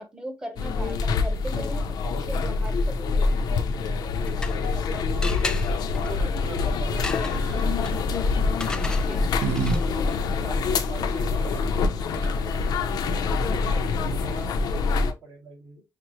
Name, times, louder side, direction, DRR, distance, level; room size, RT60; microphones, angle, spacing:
voice 1, 0.0-3.3 8.8-9.2, equal, 10° right, 1.0 m, -39 dB
sound 1, 0.6-15.1, left 4 dB, 75° left, 0.6 m, -25 dB
sound 2, 3.9-4.8 5.2-10.0, left 2 dB, 10° left, 0.3 m, -37 dB
voice 2, 4.7-5.4 6.0-8.3 9.5-12.1 13.0-15.8, right 2 dB, 60° right, 2.2 m, -42 dB
sound 3, 7.3-7.7 8.7-9.8 10.1-10.2 11.8-11.9 12.1-12.6, right 5 dB, 80° right, 0.9 m, -30 dB
5.9 x 2.1 x 3.0 m
cardioid pair, 120°, 7 cm